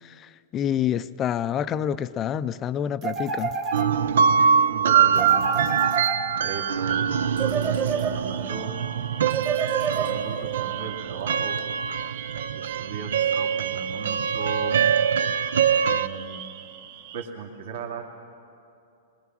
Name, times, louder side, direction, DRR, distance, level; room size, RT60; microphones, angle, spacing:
voice 1, 0.0-3.6, left 9 dB, 20° left, 14 dB, 0.4 m, -28 dB
sound 1, 3.0-4.3 5.2-6.7 7.4-8.6 9.3-10.5, right 5 dB, 25° right, 1.3 m, -29 dB
sound 2, 3.7-16.1, right 7 dB, 90° right, 0.6 m, -23 dB
voice 2, 4.7-5.4 6.4-8.8 9.9-11.6 12.5-14.8 15.9-16.4 17.1-18.0, right 5 dB, 65° right, -1 dB, 2.3 m, -36 dB
sound 3, 6.9-17.3, right 10 dB, 45° right, 0.9 m, -44 dB
26.5 x 20.5 x 6.2 m, 2.6 s
supercardioid pair, 165°, 0 cm